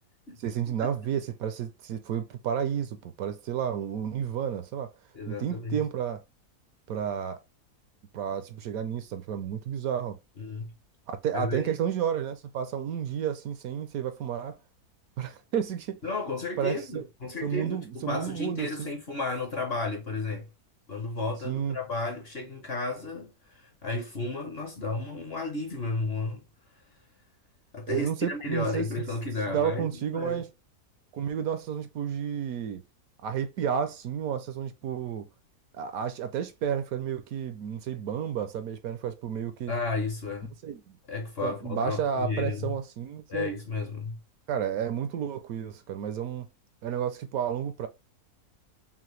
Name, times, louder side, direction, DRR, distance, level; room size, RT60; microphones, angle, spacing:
voice 1, 0.4-4.9 5.3-6.2 6.9-7.4 8.1-10.2 11.1-14.6 15.2-16.0 16.6-17.0 17.4-18.9 21.4-21.8 27.9-28.9 29.5-30.5 31.1-32.8 33.2-35.3 35.7-39.7 40.6-41.0 41.4-43.5 44.5-46.5 46.8-47.9, right 8 dB, 70° right, 0.9 m, -31 dB
voice 2, 5.1-5.8 10.4-10.7 11.3-11.7 16.0-20.5 20.9-26.4 27.7-30.4 39.7-40.5 41.1-42.7 43.3-44.2, left 3 dB, 50° left, 0.8 m, -33 dB
5.7 x 2.1 x 3.1 m
omnidirectional pair, 1.7 m